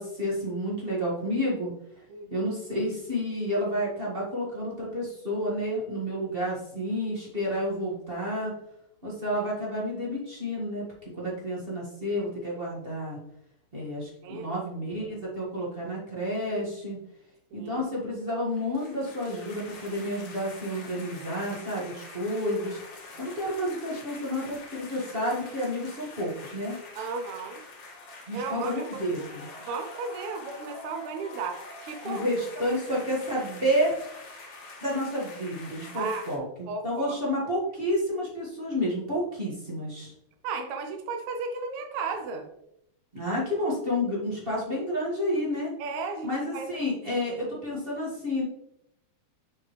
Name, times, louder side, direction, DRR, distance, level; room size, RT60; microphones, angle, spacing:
voice 1, 0.0-1.7 2.3-8.5 9.0-13.2 13.7-17.0 17.5-22.8 23.2-26.8 28.3-29.4 32.0-33.9 34.8-40.1 43.1-45.7 46.2-48.4, equal, 25° right, -5 dB, 1.3 m, -30 dB
voice 2, 2.1-2.5 14.2-14.5 17.5-17.8 27.0-27.6 28.3-29.0 29.6-32.3 35.9-36.3 36.7-37.2 40.4-42.5 45.8-46.7, right 4 dB, 80° right, 4 dB, 2.1 m, -35 dB
sound 1, 18.5-36.4, left 2 dB, 60° left, 2.1 m, -45 dB
7.2 x 5.2 x 3.2 m, 0.77 s
omnidirectional pair, 3.3 m